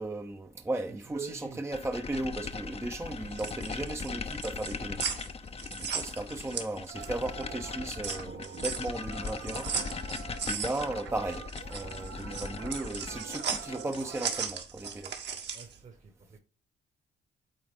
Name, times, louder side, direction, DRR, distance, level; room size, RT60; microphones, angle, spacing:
voice 1, 0.0-5.0 5.8-9.7 10.4-15.1, right 2 dB, 15° right, 0.7 m, -36 dB
voice 2, 1.1-1.6 15.5-16.4, right 5 dB, 40° right, 1.3 m, -44 dB
sound 1, 1.7-14.1, left 5 dB, 30° left, 0.7 m, -40 dB
sound 2, 3.1-7.3 7.6-15.8, right 6 dB, 60° right, 1.6 m, -37 dB
sound 3, 6.9-14.5, right 9 dB, 80° right, 0.8 m, -46 dB
8.9 x 3.9 x 3.6 m
cardioid pair, 90°, 20 cm